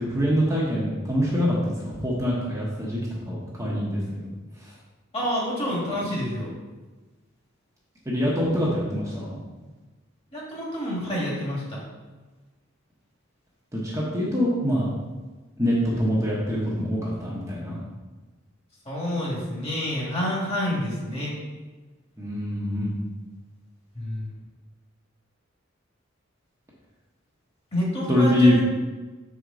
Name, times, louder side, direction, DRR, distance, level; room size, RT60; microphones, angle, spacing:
voice 1, 0.0-3.0 3.3-4.3 4.6-4.7 8.1-9.4 13.7-14.9 15.6-17.8 22.2-22.9 28.1-28.5, equal, 15° right, -6 dB, 1.0 m, -24 dB
voice 2, 5.1-6.5 10.3-11.8 18.9-21.4 23.9-24.3 27.7-28.7, equal, 30° left, -4 dB, 1.9 m, -28 dB
6.3 x 4.8 x 3.9 m, 1.3 s
head